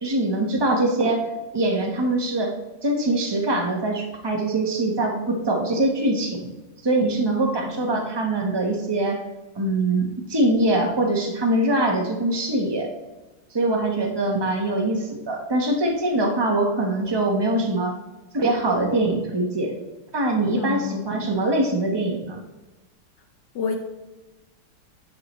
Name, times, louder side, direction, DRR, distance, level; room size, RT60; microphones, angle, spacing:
voice 1, 0.0-1.2 1.5-2.5 2.8-6.5 6.8-9.2 9.5-12.9 13.5-17.9 18.3-19.7 20.1-22.4, right 2 dB, 35° right, 1 dB, 0.4 m, -23 dB
voice 2, 20.5-21.0 23.5-23.8, left 5 dB, 60° left, 4 dB, 1.3 m, -28 dB
9.9 x 5.7 x 3.1 m, 1.1 s
omnidirectional pair, 2.4 m